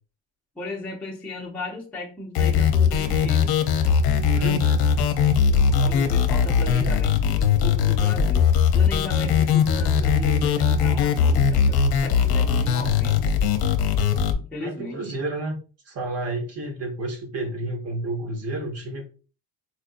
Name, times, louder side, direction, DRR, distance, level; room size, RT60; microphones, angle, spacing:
voice 1, 0.6-3.6 5.8-8.5 8.7-13.3 14.5-15.1, left 2 dB, 5° left, -3 dB, 0.5 m, -36 dB
sound 1, 2.3-14.3, left 6 dB, 60° left, 0.6 m, -20 dB
voice 2, 4.3-4.9 14.6-15.6 15.8-19.0, right 2 dB, 35° right, 2 dB, 1.0 m, -30 dB
4.4 x 2.5 x 2.5 m, 0.36 s
cardioid pair, 170°, 42 cm